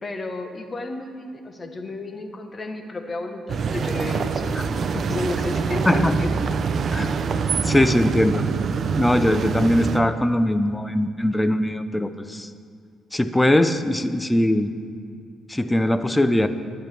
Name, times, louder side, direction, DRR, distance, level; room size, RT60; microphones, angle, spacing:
voice 1, 0.0-4.6 4.9-6.3, left 2 dB, 30° left, 5 dB, 1.1 m, -32 dB
sound 1, 3.5-10.0, right 5 dB, 55° right, 0.5 m, -25 dB
voice 2, 7.6-8.4 9.0-12.5 13.1-14.7 15.5-16.5, left 1 dB, 10° left, 10 dB, 0.5 m, -21 dB
12.0 x 10.0 x 3.4 m, 2.2 s
cardioid pair, 90°, 0 cm